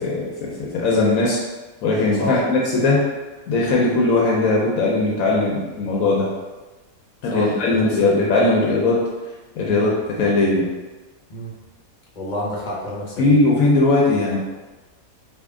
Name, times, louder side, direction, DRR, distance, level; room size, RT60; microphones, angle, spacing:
voice 1, 0.0-1.4 1.8-3.1 3.5-6.3 7.2-9.1 9.5-10.7 13.2-14.4, left 2 dB, 75° left, -3 dB, 1.0 m, -19 dB
voice 2, 7.3-7.8 8.1-8.3 9.6-9.8 11.3-11.5 12.2-13.4, left 1 dB, 40° left, -4 dB, 0.7 m, -29 dB
3.5 x 2.4 x 3.5 m, 1.2 s
omnidirectional pair, 1.5 m